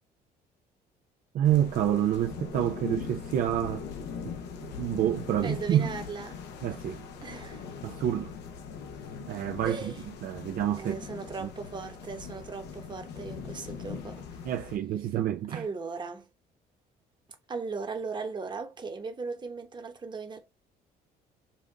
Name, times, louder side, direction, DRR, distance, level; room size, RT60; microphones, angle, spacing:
voice 1, 1.3-3.9 4.2-4.3 4.6-5.9 6.6-7.1 7.8-8.3 9.2-9.9 10.2-11.0 11.4-11.5 14.4-15.7, right 11 dB, 60° right, 0.5 m, -28 dB
sound 1, 1.4-14.8, left 6 dB, 85° left, 0.9 m, -41 dB
voice 2, 5.4-6.4 7.2-7.7 9.6-10.0 10.8-14.4 15.5-16.3 17.5-20.4, right 4 dB, 25° right, 1.1 m, -38 dB
5.5 x 2.5 x 3.3 m
cardioid pair, 110°, 17 cm